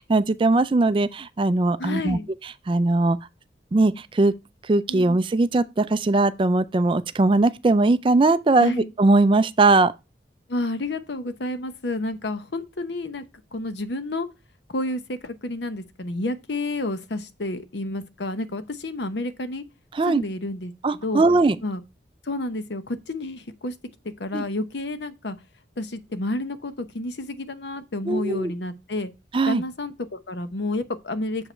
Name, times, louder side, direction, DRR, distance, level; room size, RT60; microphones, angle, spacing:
voice 1, 0.0-2.2 2.7-3.2 3.7-4.3 4.7-9.9 19.9-20.2 20.8-21.6 24.3-24.4 28.1-28.5 29.3-29.6, right 2 dB, 30° right, 0.3 m, -20 dB
voice 2, 1.8-2.3 4.9-5.1 8.6-8.9 10.5-13.2 13.5-14.3 14.7-19.6 20.0-20.7 21.0-21.2 21.6-21.8 22.3-23.7 24.2-25.4 25.8-29.1 29.5-31.5, left 2 dB, 75° left, 0.8 m, -30 dB
7.2 x 5.0 x 4.4 m
head